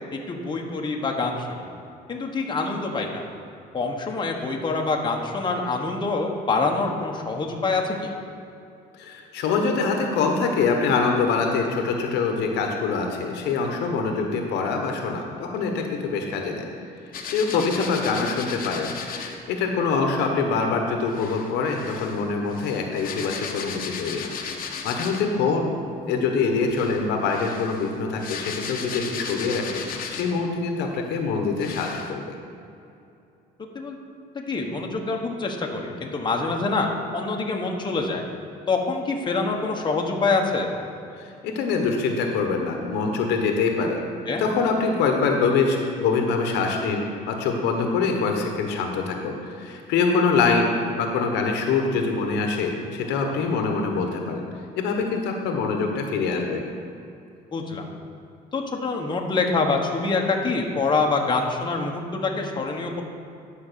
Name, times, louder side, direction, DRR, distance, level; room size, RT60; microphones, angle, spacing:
voice 1, 0.1-1.7 2.1-3.3 3.7-8.1 17.5-17.6 33.7-34.0 34.3-36.9 37.1-38.2 38.7-40.7 44.3-44.4 57.5-57.9 58.5-63.0, left 3 dB, 25° left, 1 dB, 1.2 m, -25 dB
voice 2, 9.0-16.6 17.3-24.3 24.6-25.8 26.1-32.2 41.2-44.0 44.4-54.4 54.8-56.6, left 4 dB, 85° left, 3 dB, 1.2 m, -24 dB
sound 1, 17.1-19.4 21.1-25.4 26.6-30.5 31.1-31.2 31.6-32.1, left 6 dB, 60° left, 1.1 m, -35 dB
10.0 x 5.3 x 6.9 m, 2.6 s
cardioid pair, 110°, 17 cm